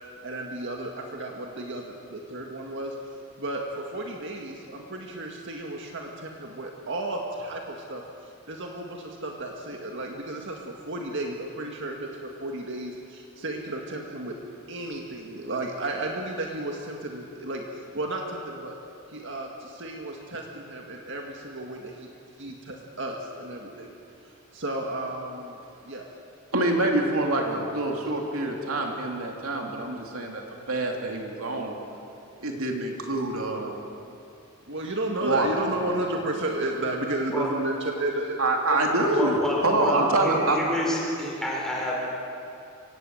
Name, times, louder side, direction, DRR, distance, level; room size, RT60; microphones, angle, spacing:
voice 1, 0.2-3.0 3.4-8.0 8.5-14.4 14.7-18.7 19.1-22.1 22.4-23.9 24.5-25.6 25.8-26.1 34.7-38.4 38.7-39.5 39.8-40.2, right 1 dB, 60° right, 1 dB, 1.9 m, -33 dB
voice 2, 26.5-30.4 30.7-31.7 32.4-33.7 35.2-35.5 35.8-35.9 38.4-39.4 39.6-40.6, right 2 dB, 85° right, 1 dB, 3.1 m, -26 dB
voice 3, 39.1-41.9, equal, ahead, -3 dB, 5.2 m, -28 dB
24.5 x 18.0 x 7.9 m, 2.6 s
head